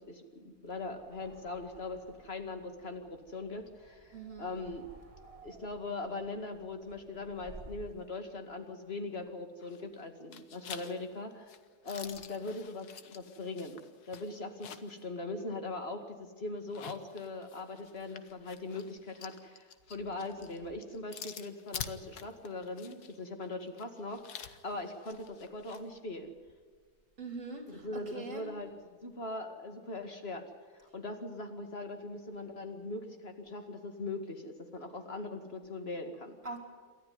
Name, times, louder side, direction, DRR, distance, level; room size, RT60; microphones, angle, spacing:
voice 1, 0.1-4.9 5.4-11.5 11.8-26.3 27.7-28.7 29.0-30.4 30.7-36.4, left 2 dB, 40° left, 5 dB, 2.3 m, -41 dB
sound 1, 0.8-8.1, right 2 dB, 25° right, 1.4 m, -55 dB
voice 2, 4.1-4.5 27.2-28.5 36.4-36.6, right 3 dB, 55° right, 4 dB, 3.7 m, -43 dB
sound 2, 9.6-10.0 10.3-15.0 15.4-15.5 16.6-25.8, left 8 dB, 80° left, 1.6 m, -48 dB
28.0 x 12.5 x 9.5 m, 1.5 s
omnidirectional pair, 1.6 m